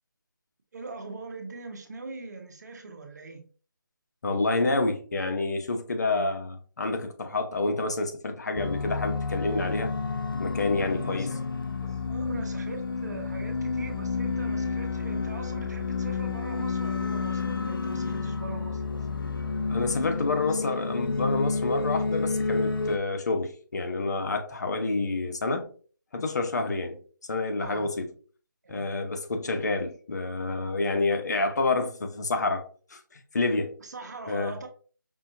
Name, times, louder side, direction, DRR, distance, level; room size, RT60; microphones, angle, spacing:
voice 1, 0.7-3.4 10.9-19.0 20.5-20.6 27.6-27.9 28.6-28.8 33.8-34.7, right 3 dB, 55° right, 1.0 m, -41 dB
voice 2, 4.2-9.9 10.4-11.3 19.7-25.7 26.1-28.1 28.7-32.6 32.9-33.7 34.3-34.6, left 3 dB, 55° left, 0.8 m, -28 dB
sound 1, 8.5-23.0, left 4 dB, 85° left, 0.5 m, -30 dB
5.4 x 2.6 x 2.6 m
figure-of-eight pair, 165°, 11 cm